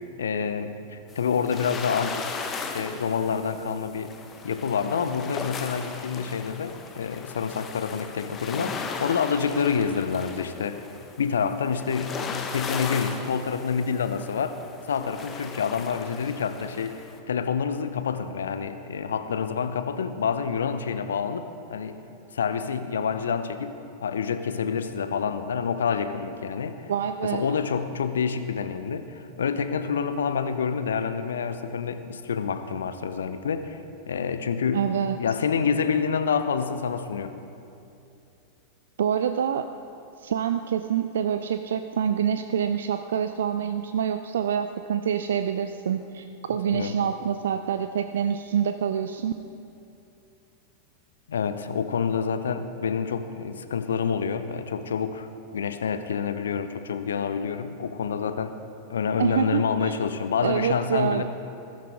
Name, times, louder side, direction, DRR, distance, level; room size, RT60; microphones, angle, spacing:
voice 1, 0.2-4.1 4.4-10.9 11.2-14.6 14.9-17.0 17.3-22.0 22.3-26.9 27.2-34.8 35.2-37.3 46.7-46.9 51.3-58.5 58.9-61.2, left 6 dB, 65° left, 10 dB, 0.8 m, -28 dB
sound 1, 1.1-17.2, left 5 dB, 25° left, 1.2 m, -37 dB
voice 2, 26.9-27.6 34.7-35.2 39.0-39.7 40.2-49.3 59.2-60.0 60.4-61.2, right 8 dB, 65° right, 9 dB, 0.5 m, -26 dB
21.0 x 12.0 x 3.7 m, 2.7 s
figure-of-eight pair, 90°, 0 cm